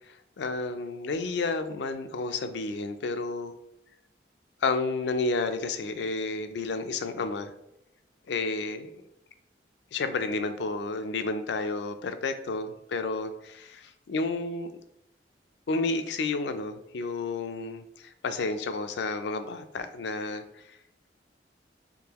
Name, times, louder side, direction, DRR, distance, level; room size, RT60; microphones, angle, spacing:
voice 1, 0.4-3.5 4.6-7.5 8.3-8.9 9.9-14.7 15.7-20.4, left 3 dB, 75° left, 9 dB, 0.4 m, -31 dB
3.7 x 3.6 x 2.9 m, 0.81 s
head